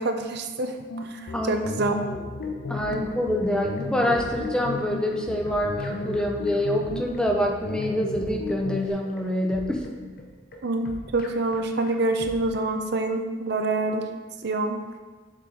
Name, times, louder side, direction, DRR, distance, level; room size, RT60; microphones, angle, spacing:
voice 1, 0.0-1.9 10.6-14.0 14.4-14.8, right 2 dB, 55° right, 5 dB, 0.6 m, -26 dB
sound 1, 0.9-8.9, left 3 dB, 85° left, 0.6 m, -34 dB
voice 2, 1.3-2.0 2.7-9.8, left 1 dB, 5° left, 1 dB, 0.6 m, -26 dB
sound 2, 2.1-12.7, left 1 dB, 45° left, 0.9 m, -43 dB
7.4 x 3.9 x 4.7 m, 1.4 s
head